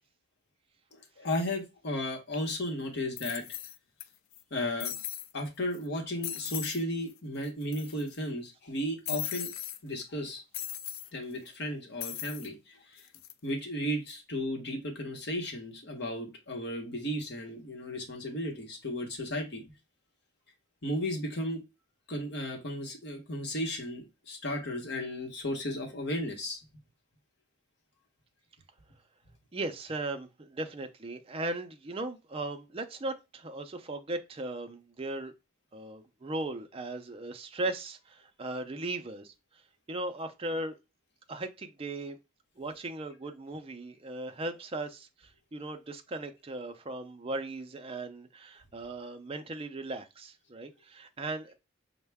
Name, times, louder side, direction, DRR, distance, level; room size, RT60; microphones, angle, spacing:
voice 1, 0.9-3.4 4.5-4.9 5.3-9.5 9.8-10.4 11.1-13.0 13.4-19.6 20.8-21.6 22.1-26.6, left 1 dB, 50° left, 1.1 m, -34 dB
sound 1, 2.3-2.4 3.2-4.0 4.3-4.4 4.8-5.3 5.7-5.9 6.2-6.8 7.1-7.2 7.4-8.1 9.0-9.8 10.5-11.1 12.0-12.5 13.0-13.3, left 12 dB, 70° left, 0.3 m, -38 dB
voice 2, 29.5-35.3 35.7-39.6 39.9-40.7 41.3-42.2 42.6-51.5, right 2 dB, 25° right, 0.4 m, -37 dB
5.4 x 2.1 x 3.4 m
head